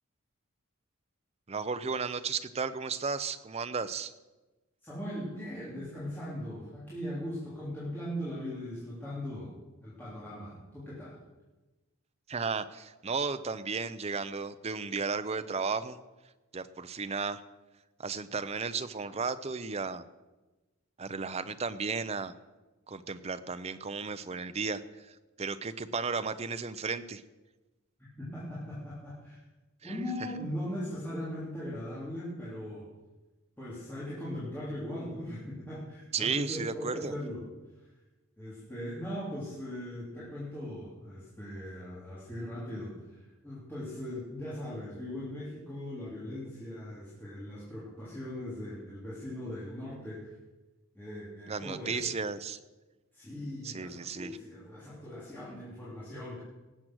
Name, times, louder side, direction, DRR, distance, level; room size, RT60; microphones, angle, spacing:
voice 1, 1.5-4.1 12.3-16.0 16.5-17.4 18.0-20.0 21.0-22.3 22.9-27.2 29.9-30.0 36.1-37.1 51.5-52.6 53.6-54.4, right 4 dB, 30° right, 12 dB, 0.6 m, -34 dB
voice 2, 4.8-9.5 9.8-11.2 28.2-29.4 29.8-32.9 33.6-37.4 37.8-37.9 38.4-50.3 50.9-52.1 53.1-56.4, left 1 dB, 10° left, -10 dB, 3.3 m, -39 dB
18.5 x 7.7 x 6.2 m, 1.1 s
head